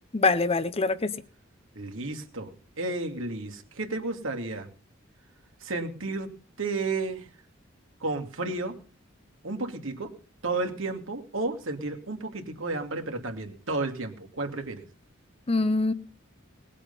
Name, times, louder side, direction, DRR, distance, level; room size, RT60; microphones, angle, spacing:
voice 1, 0.1-1.1 15.5-15.9, left 3 dB, 30° left, 14 dB, 0.8 m, -24 dB
voice 2, 1.8-4.7 5.6-6.3 6.6-7.3 8.0-8.8 9.4-10.1 10.4-14.8, right 3 dB, 75° right, 4 dB, 2.6 m, -32 dB
19.5 x 8.4 x 5.5 m, 0.39 s
head